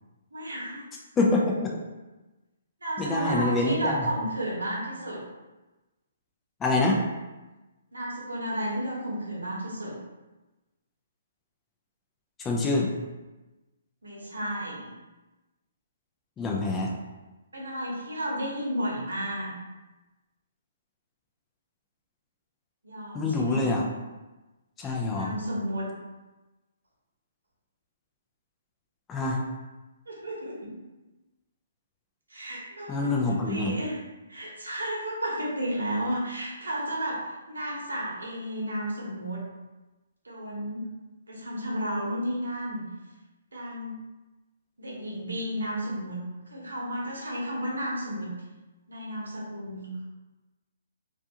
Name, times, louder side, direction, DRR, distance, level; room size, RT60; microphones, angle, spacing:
voice 1, 0.3-0.8 2.8-5.2 7.9-9.9 14.0-14.9 17.5-19.5 22.8-23.8 25.1-25.9 30.1-30.8 32.3-34.0 34.3-39.4 40.2-40.9 41.3-42.8 43.5-44.0 44.8-48.3 48.9-50.1, equal, 90° right, -4 dB, 0.8 m, -32 dB
voice 2, 1.2-1.7 3.0-4.1 6.6-7.0 12.4-12.9 16.4-16.9 23.1-23.8 24.8-25.4 29.1-29.4 32.9-33.8, left 2 dB, 15° left, -1 dB, 0.4 m, -26 dB
2.4 x 2.3 x 2.7 m, 1.1 s
hypercardioid pair, 140°, 0 cm